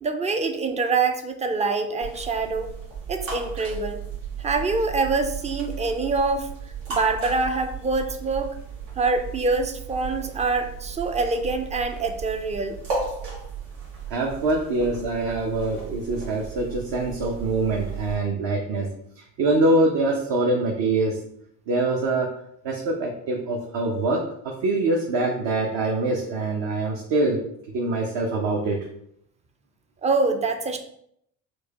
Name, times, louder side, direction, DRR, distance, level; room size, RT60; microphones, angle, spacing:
voice 1, 0.0-2.7 3.1-4.0 4.4-6.5 6.9-8.5 9.0-12.8 30.0-30.8, right 3 dB, 15° right, 7 dB, 0.3 m, -25 dB
sound 1, 2.0-18.2, right 5 dB, 75° right, 1.4 m, -35 dB
voice 2, 14.1-21.2 21.7-22.3 22.6-27.4 27.7-28.9, right 2 dB, 55° right, -1 dB, 0.8 m, -24 dB
4.5 x 2.3 x 2.8 m, 0.71 s
hypercardioid pair, 70°, 49 cm